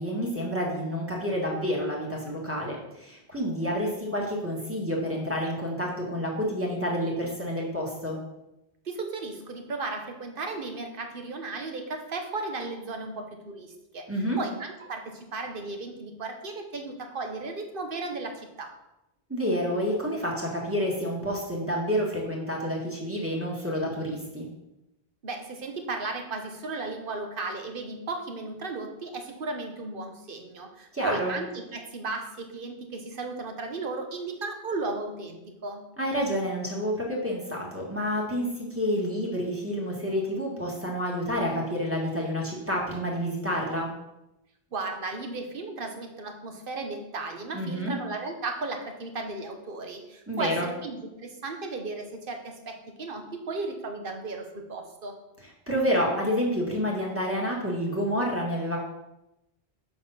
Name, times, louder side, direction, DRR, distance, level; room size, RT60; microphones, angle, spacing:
voice 1, 0.0-8.2 14.1-14.4 19.3-24.4 30.9-31.3 36.0-43.9 47.5-47.9 50.3-50.7 55.7-58.8, equal, 15° right, -3 dB, 1.6 m, -29 dB
voice 2, 8.8-14.1 14.4-18.7 25.2-35.8 44.7-55.2, right 3 dB, 60° right, 4 dB, 1.2 m, -35 dB
6.7 x 4.3 x 5.5 m, 0.91 s
omnidirectional pair, 1.1 m